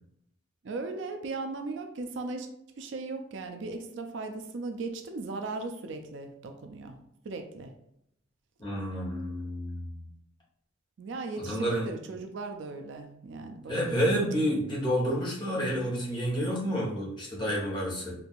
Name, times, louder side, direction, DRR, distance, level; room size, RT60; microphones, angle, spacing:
voice 1, 0.6-2.5 2.7-7.0 7.2-7.7 11.0-14.2, right 3 dB, 65° right, 5 dB, 0.4 m, -37 dB
voice 2, 8.6-10.1 11.4-11.9 13.7-18.1, equal, 25° left, -5 dB, 1.1 m, -29 dB
4.5 x 2.6 x 2.4 m, 0.77 s
head